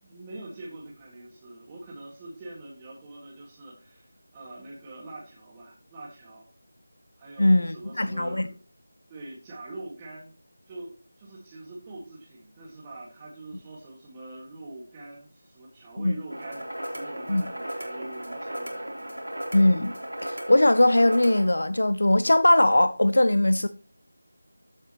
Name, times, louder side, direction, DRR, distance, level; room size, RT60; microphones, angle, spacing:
voice 1, 0.0-6.5 7.2-8.6 9.1-10.3 10.7-19.4, right 2 dB, 15° right, 1.8 m, -44 dB
voice 2, 7.4-8.5 16.0-16.2 17.3-17.4 19.5-19.9 20.2-23.7, left 1 dB, 65° left, 0.6 m, -20 dB
sound 1, 16.3-21.5, right 1 dB, 85° right, 3.4 m, -36 dB
14.5 x 6.7 x 3.0 m
figure-of-eight pair, 165°, 0 cm